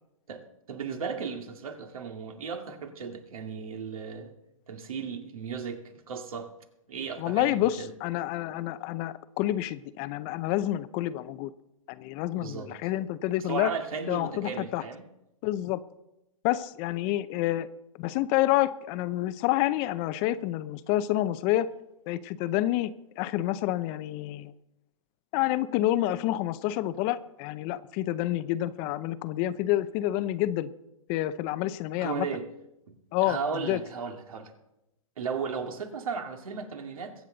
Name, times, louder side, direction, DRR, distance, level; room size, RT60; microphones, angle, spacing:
voice 1, 0.3-4.3 4.7-6.5 6.9-7.9 12.3-12.8 13.4-15.0 30.2-30.3 32.0-32.4 32.9-33.0 33.2-34.5 35.2-37.1, right 5 dB, 75° right, 4 dB, 2.3 m, -35 dB
voice 2, 7.2-11.5 11.9-13.7 14.1-14.8 15.4-15.8 16.4-17.7 18.0-21.7 22.1-22.9 23.2-24.5 25.3-30.7 31.1-32.3 33.1-33.4 33.7-33.8, left 14 dB, 30° left, 14 dB, 0.6 m, -28 dB
22.5 x 8.3 x 3.9 m, 0.87 s
hypercardioid pair, 135°, 18 cm